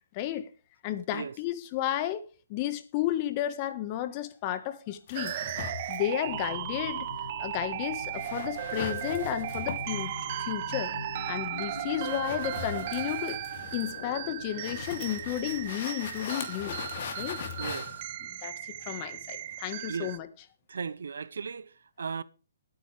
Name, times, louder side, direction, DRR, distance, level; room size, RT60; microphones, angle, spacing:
voice 1, 0.1-0.5 0.8-2.2 2.5-5.4 5.9-7.1 7.4-10.1 10.4-10.9 11.3-13.4 13.7-16.8 17.2-17.4 18.3-20.3, left 12 dB, 30° left, 1.4 m, -32 dB
sound 1, 5.1-19.5, left 7 dB, 45° left, 2.9 m, -41 dB
sound 2, 5.1-20.2, right 14 dB, 40° right, 0.5 m, -36 dB
sound 3, 6.3-15.7, left 5 dB, 70° left, 1.7 m, -45 dB
voice 2, 17.6-18.0 19.9-20.1 20.7-22.2, right 5 dB, 80° right, 0.8 m, -36 dB
21.0 x 9.5 x 3.4 m
hypercardioid pair, 155°, 0 cm